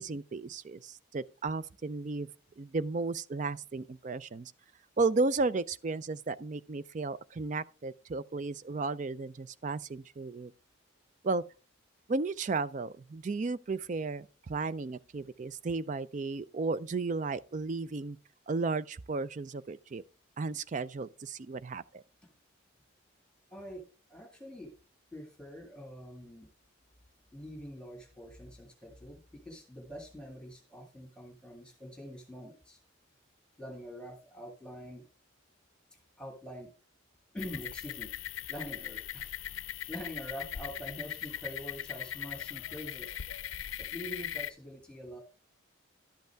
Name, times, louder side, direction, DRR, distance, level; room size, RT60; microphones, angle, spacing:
voice 1, 0.0-2.3 2.6-4.5 5.0-10.5 11.2-11.4 12.1-18.2 18.5-20.0 20.4-22.0, right 3 dB, 35° right, 0.4 m, -34 dB
voice 2, 23.5-24.7 25.1-26.5 27.3-32.8 33.6-35.0 35.9-36.7 37.3-38.1 38.5-39.3 39.9-43.2 43.8-45.2, equal, 5° left, 1.8 m, -45 dB
sound 1, 37.4-44.5, left 10 dB, 75° left, 0.5 m, -40 dB
11.5 x 8.0 x 3.4 m
head